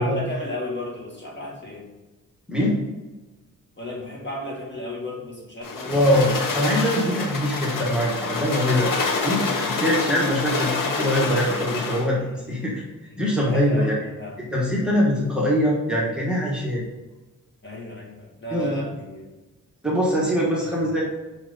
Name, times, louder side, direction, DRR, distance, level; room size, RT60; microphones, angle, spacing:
voice 1, 0.0-1.9 3.8-6.3 12.0-12.7 13.1-14.4 17.6-19.3 20.6-21.0, left 1 dB, 35° left, -3 dB, 1.8 m, -35 dB
voice 2, 2.5-2.8 5.8-8.9 9.2-12.2 12.5-12.8 13.2-14.0 14.5-16.8 18.5-18.8 19.8-21.0, equal, 5° right, -5 dB, 1.3 m, -22 dB
sound 1, 5.6-12.1, left 4 dB, 85° left, 1.0 m, -27 dB
5.8 x 5.3 x 4.0 m, 1.2 s
wide cardioid pair, 145°, 32 cm